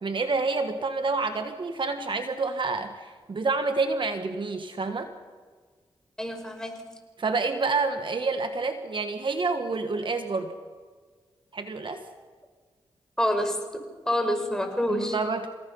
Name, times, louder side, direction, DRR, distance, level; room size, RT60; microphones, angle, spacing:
voice 1, 0.0-5.1 7.2-10.5 11.5-12.0 14.9-15.5, right 3 dB, 55° right, 7 dB, 1.5 m, -28 dB
voice 2, 6.2-6.9 13.2-13.6 14.1-15.2, left 1 dB, 5° left, 4 dB, 5.1 m, -27 dB
28.0 x 18.0 x 5.6 m, 1.5 s
cardioid pair, 60°, 10 cm